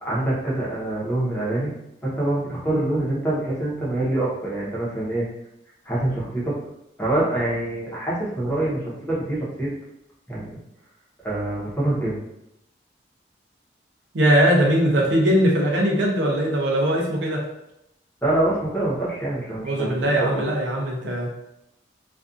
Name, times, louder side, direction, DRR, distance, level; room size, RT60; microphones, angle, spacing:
voice 1, 0.0-1.7 2.0-5.2 5.8-6.6 7.0-9.7 10.3-10.6 11.2-12.2 18.2-20.5, right 1 dB, 10° left, -8 dB, 0.8 m, -25 dB
voice 2, 14.1-17.4 19.6-21.3, equal, 90° right, 0 dB, 0.6 m, -20 dB
2.5 x 2.4 x 2.4 m, 0.84 s
head